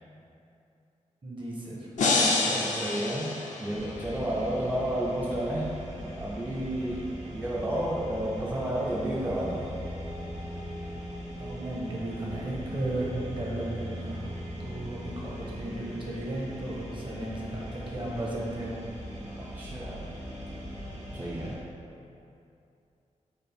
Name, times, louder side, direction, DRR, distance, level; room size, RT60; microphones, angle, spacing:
voice 1, 1.2-1.9 2.4-2.6 8.6-8.7 11.4-18.7, right 1 dB, 40° right, -4 dB, 0.8 m, -35 dB
sound 1, 2.0-4.1, left 3 dB, 75° left, 0.4 m, -27 dB
voice 2, 2.5-5.7 6.2-9.7 19.3-20.1 21.1-21.6, right 1 dB, 15° right, -5 dB, 0.4 m, -31 dB
sound 2, 3.7-21.6, equal, 65° right, 1.3 m, -40 dB
4.2 x 2.4 x 3.4 m, 2.6 s
wide cardioid pair, 90°, 13 cm